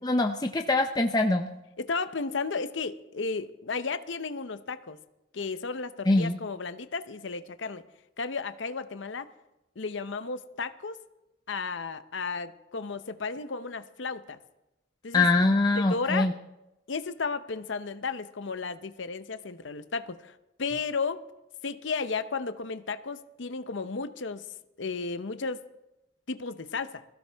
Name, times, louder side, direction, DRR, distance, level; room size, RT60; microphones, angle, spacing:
voice 1, 0.0-1.5 6.1-6.4 15.1-16.3, left 2 dB, 20° left, 4 dB, 0.5 m, -23 dB
voice 2, 1.8-5.0 5.3-7.8 8.2-9.3 9.8-11.0 11.5-14.4 15.0-15.3 15.8-16.3 16.9-21.2 21.6-24.5 24.8-25.6 26.3-27.0, left 4 dB, 65° left, 11 dB, 0.7 m, -33 dB
21.0 x 15.5 x 3.5 m, 0.94 s
head